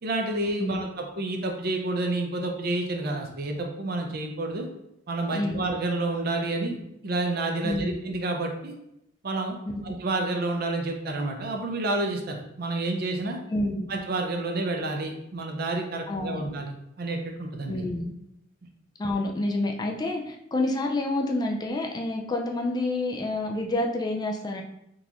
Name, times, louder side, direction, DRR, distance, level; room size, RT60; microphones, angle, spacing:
voice 1, 0.0-4.7 5.1-6.8 7.0-8.7 9.2-9.6 9.8-13.4 13.9-16.7 17.0-17.9, right 2 dB, 55° right, 3 dB, 0.5 m, -29 dB
voice 2, 5.3-5.6 7.6-8.0 9.7-9.8 13.5-13.9 16.1-16.4 17.7-18.1 19.0-24.6, left 2 dB, 20° left, 1 dB, 0.3 m, -28 dB
3.8 x 2.4 x 2.9 m, 0.82 s
head